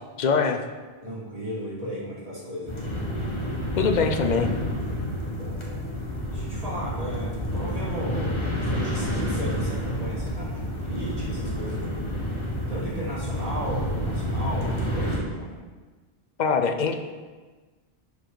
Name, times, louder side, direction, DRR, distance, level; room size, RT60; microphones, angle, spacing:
voice 1, 0.2-0.6 3.8-4.5 16.4-17.0, left 5 dB, 50° left, 7 dB, 0.7 m, -23 dB
voice 2, 1.0-2.8 5.2-5.9 6.3-12.0 12.7-15.6, right 1 dB, 35° right, -8 dB, 2.6 m, -35 dB
sound 1, 2.7-15.2, equal, 30° left, 1.3 m, -29 dB
10.5 x 5.1 x 3.9 m, 1.3 s
omnidirectional pair, 1.1 m